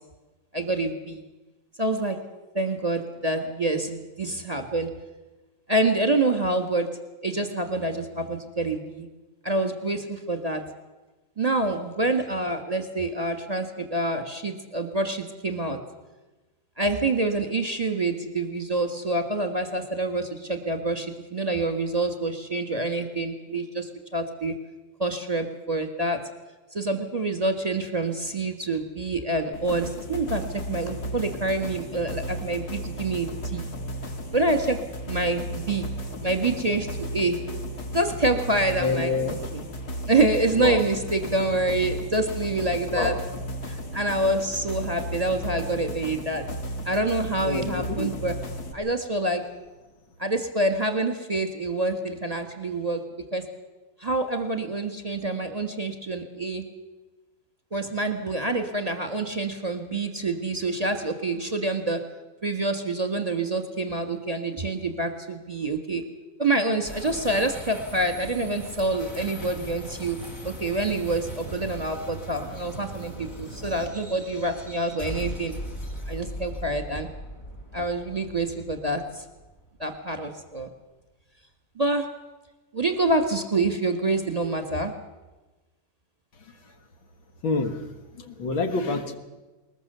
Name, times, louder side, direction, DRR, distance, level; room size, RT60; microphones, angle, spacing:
voice 1, 0.5-1.2 1.8-2.2 2.5-4.9 5.7-6.9 7.2-9.1 9.4-10.6 11.4-15.8 16.8-24.5 25.0-26.2 26.7-33.7 34.3-34.8 35.0-35.9 36.2-37.4 37.9-39.1 39.5-39.6 40.1-43.2 43.7-46.5 46.8-48.3 48.7-49.4 50.2-53.0 53.3-53.5 54.0-56.6 57.7-62.0 62.4-66.0 66.4-70.2 70.4-75.5 76.1-77.1 77.7-79.2 79.8-80.7 81.8-82.1 82.7-84.9, right 2 dB, 20° right, 7 dB, 1.4 m, -27 dB
sound 1, 29.5-48.7, equal, 50° left, 2.4 m, -34 dB
voice 2, 38.8-39.4 40.5-40.8 42.9-43.2 47.4-48.1 87.4-87.8 88.2-89.2, left 3 dB, 70° left, 6 dB, 2.4 m, -27 dB
sound 2, 66.8-80.2, right 1 dB, 30° left, 3.5 m, -39 dB
21.0 x 20.5 x 6.8 m, 1.2 s
omnidirectional pair, 2.3 m